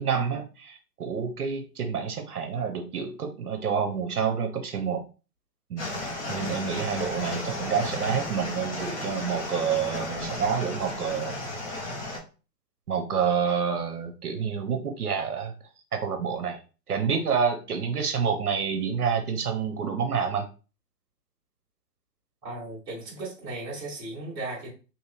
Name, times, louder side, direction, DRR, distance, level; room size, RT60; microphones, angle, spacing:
voice 1, 0.0-5.0 5.7-5.9 6.3-11.4 12.9-15.5 15.9-16.6 16.9-20.4, right 6 dB, 65° right, 0.7 m, -28 dB
sound 1, 5.8-12.2, left 2 dB, 45° left, 1.1 m, -34 dB
voice 2, 22.4-24.7, right 2 dB, 10° right, 0.9 m, -36 dB
2.9 x 2.8 x 2.4 m
figure-of-eight pair, 130°, 50 cm